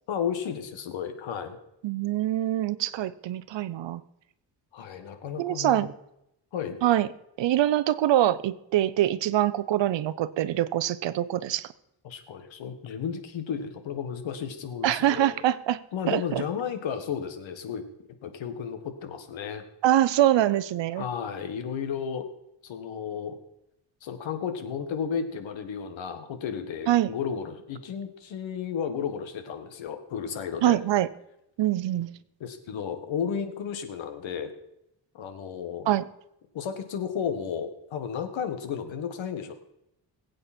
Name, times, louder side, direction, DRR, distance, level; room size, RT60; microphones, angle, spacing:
voice 1, 0.1-1.6 4.7-5.9 6.5-6.8 12.0-15.4 15.9-17.8 18.2-19.6 21.0-22.3 22.6-23.4 24.0-30.8 32.4-34.5 35.1-35.9 36.5-39.5, left 7 dB, 90° left, 8 dB, 1.8 m, -33 dB
voice 2, 1.8-4.0 5.4-5.9 6.8-7.1 7.4-11.7 14.8-15.8 16.1-16.4 19.8-21.0 26.9-27.1 30.6-31.1 31.6-32.1 35.9-36.0, right 13 dB, 75° right, 16 dB, 0.8 m, -24 dB
21.0 x 8.6 x 4.4 m, 0.83 s
cardioid pair, 140°, 45 cm